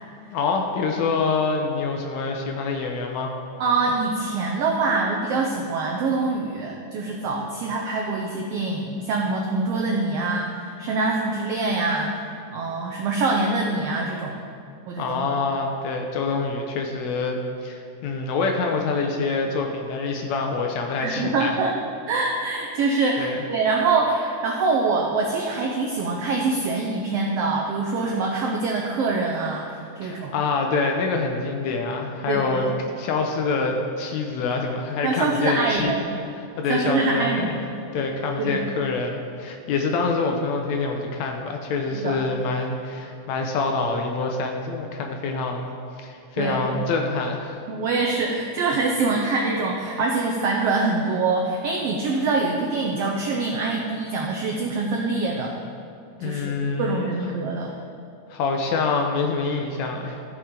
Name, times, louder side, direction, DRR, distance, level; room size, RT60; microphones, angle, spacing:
voice 1, 0.3-3.3 15.0-21.5 23.2-23.4 30.0-32.7 33.0-35.9 36.4-37.5 37.9-45.8 46.0-47.6 56.2-57.1 58.3-60.2, left 4 dB, 75° left, 3 dB, 1.8 m, -26 dB
voice 2, 3.6-12.2 12.5-14.4 14.9-15.3 21.0-21.8 22.1-30.3 32.2-32.6 35.0-36.1 36.7-37.6 38.4-38.6 41.9-42.2 46.4-46.7 47.7-55.5 56.2-57.7, right 3 dB, 90° right, 0 dB, 1.3 m, -24 dB
15.0 x 5.7 x 3.7 m, 2.5 s
omnidirectional pair, 3.6 m